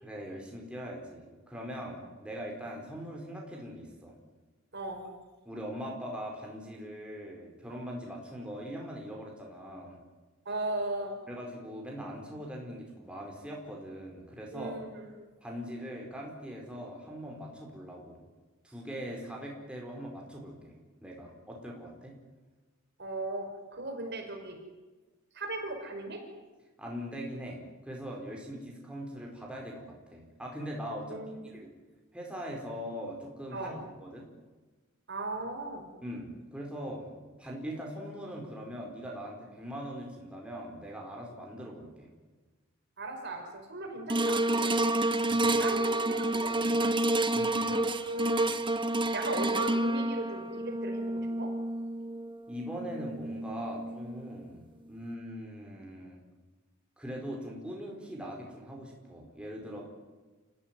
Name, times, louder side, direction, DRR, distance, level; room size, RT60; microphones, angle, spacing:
voice 1, 0.0-4.1 5.4-10.0 11.3-14.8 15.4-18.2 18.6-20.7 21.0-22.1 26.8-31.2 31.5-31.6 32.1-34.3 36.0-42.1 45.3-45.6 47.3-47.8 52.5-56.2 57.0-59.8, equal, 5° right, -2 dB, 4.7 m, -41 dB
voice 2, 4.7-5.1 10.5-11.2 14.5-15.1 23.0-24.6 25.3-26.2 31.1-31.5 33.5-33.8 35.1-35.9 43.0-44.9 45.6-46.9 47.2-47.4 47.7-48.6 49.1-51.5, right 2 dB, 55° right, 3 dB, 5.5 m, -37 dB
sound 1, 44.1-54.5 55.0-55.1, right 2 dB, 25° right, 1.1 m, -29 dB
29.5 x 15.5 x 9.6 m, 1.2 s
head